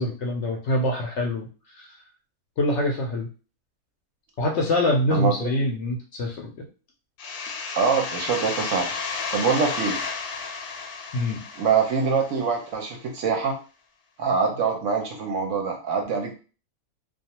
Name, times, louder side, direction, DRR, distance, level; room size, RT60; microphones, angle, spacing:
voice 1, 0.0-1.5 1.7-2.0 2.6-3.3 4.4-6.7 11.1-11.4, left 1 dB, 65° left, 0 dB, 0.8 m, -25 dB
voice 2, 5.1-5.5 7.7-8.9 9.3-10.0 11.6-13.6 14.2-16.3, right 5 dB, 65° right, 2 dB, 0.8 m, -24 dB
sound 1, 7.2-12.7, left 5 dB, 85° left, 1.1 m, -32 dB
2.3 x 2.3 x 2.8 m, 0.36 s
omnidirectional pair, 1.6 m